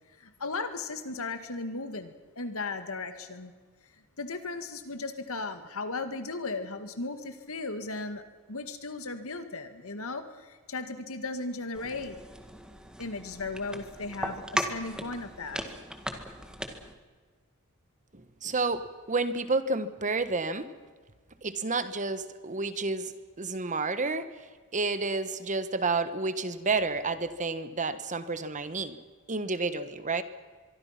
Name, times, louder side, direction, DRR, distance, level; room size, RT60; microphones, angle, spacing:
voice 1, 0.2-3.5 4.2-12.2 13.0-15.6, left 3 dB, 70° left, 8 dB, 2.1 m, -36 dB
sound 1, 11.7-16.9, right 1 dB, 5° right, 1.9 m, -37 dB
voice 2, 18.1-20.7 21.4-23.1 23.4-24.3 24.7-29.0 29.3-30.2, right 3 dB, 35° right, 12 dB, 1.4 m, -30 dB
24.0 x 24.0 x 6.0 m, 1.5 s
head